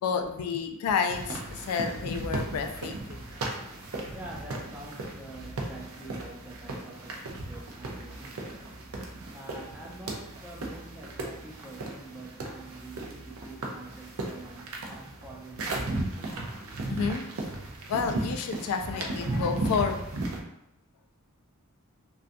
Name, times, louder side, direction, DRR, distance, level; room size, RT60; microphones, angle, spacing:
voice 1, 0.0-3.2 16.9-17.2 17.9-20.2, left 6 dB, 85° left, 10 dB, 0.3 m, -30 dB
sound 1, 1.1-20.4, right 2 dB, 70° right, 0.4 m, -36 dB
voice 2, 4.1-8.8 9.3-16.4, right 2 dB, 10° right, -2 dB, 0.4 m, -46 dB
2.4 x 2.2 x 2.5 m, 0.80 s
head